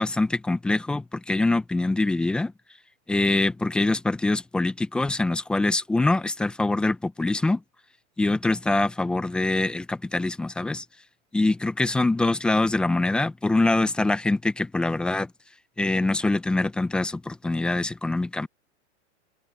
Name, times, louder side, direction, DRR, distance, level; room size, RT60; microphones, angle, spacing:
voice 1, 0.0-2.5 3.1-7.6 8.2-10.8 11.3-15.3 15.8-18.5, left 2 dB, 5° left, 0.4 m, -24 dB
hypercardioid pair, 145°, 36 cm